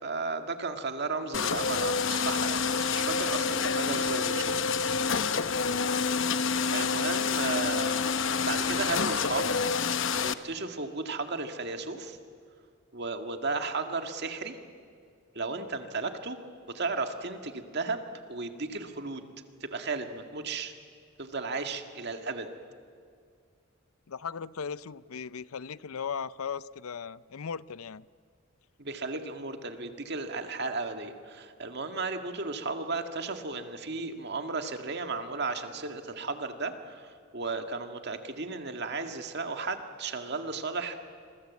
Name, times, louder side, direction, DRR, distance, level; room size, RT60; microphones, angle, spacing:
voice 1, 0.0-4.5 6.7-8.0 8.4-9.6 10.2-12.2 12.9-14.6 15.4-16.4 16.7-18.0 18.3-19.2 19.6-20.7 21.2-22.5 28.8-41.0, right 3 dB, 50° right, 1.9 m, -34 dB
sound 1, 1.3-10.3, left 5 dB, 60° left, 0.9 m, -28 dB
voice 2, 24.1-28.0, left 6 dB, 85° left, 0.6 m, -37 dB
27.5 x 23.0 x 8.3 m
head